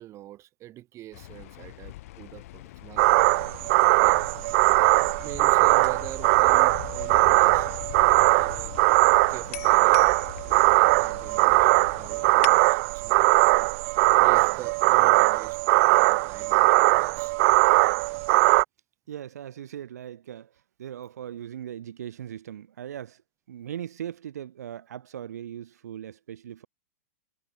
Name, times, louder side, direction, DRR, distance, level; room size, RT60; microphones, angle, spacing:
voice 1, 0.0-3.0 4.0-4.3 5.2-8.8 9.3-10.1 10.4-15.6 15.8-17.3, right 14 dB, 35° right, 3.8 m, -43 dB
sound 1, 1.1-12.5, left 16 dB, 60° left, 1.2 m, -41 dB
sound 2, 3.0-18.6, right 24 dB, 50° right, 0.6 m, -20 dB
voice 2, 19.1-23.2 23.5-26.7, right 10 dB, 80° right, 4.7 m, -39 dB
hypercardioid pair, 120°, 9 cm